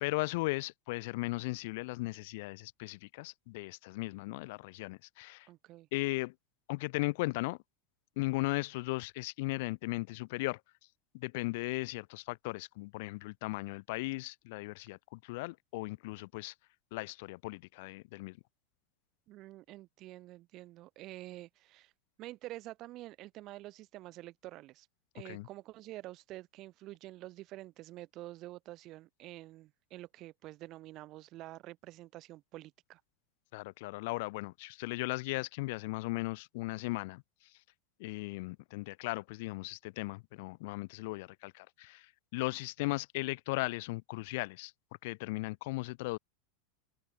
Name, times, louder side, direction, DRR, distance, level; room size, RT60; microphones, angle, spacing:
voice 1, 0.0-5.5 5.9-6.3 6.7-7.6 8.2-10.6 11.1-16.5 16.9-18.4 25.2-25.5 33.5-37.2 38.0-44.7 45.0-46.2, left 23 dB, 65° left, 0.7 m, -37 dB
voice 2, 5.5-5.9 19.3-21.9 22.2-24.9 25.1-33.0, right 17 dB, 45° right, 2.5 m, -48 dB
open air
supercardioid pair, 130°, 0 cm